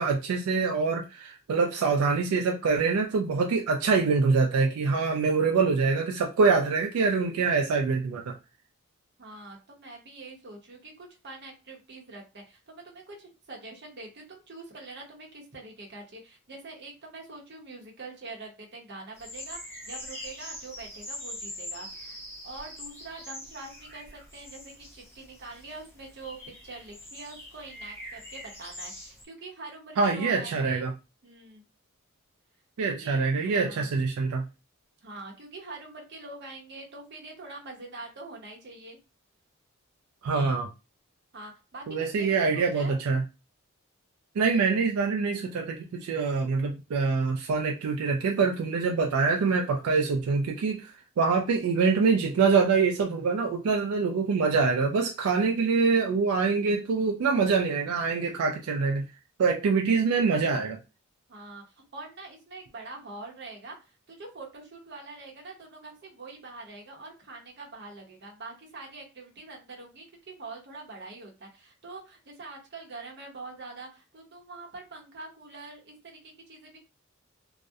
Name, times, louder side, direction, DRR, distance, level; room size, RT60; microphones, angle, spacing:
voice 1, 0.0-8.4 30.0-30.9 32.8-34.4 40.2-40.7 41.9-43.2 44.4-50.9 51.2-59.1 59.4-60.8, right 4 dB, 85° right, 0.3 m, -25 dB
voice 2, 9.2-30.9 31.2-31.6 32.8-33.9 35.0-39.0 41.3-43.0 61.3-76.8, right 3 dB, 50° right, 0.7 m, -44 dB
sound 1, 19.2-29.2, left 1 dB, 10° left, 0.6 m, -43 dB
2.6 x 2.0 x 2.3 m
head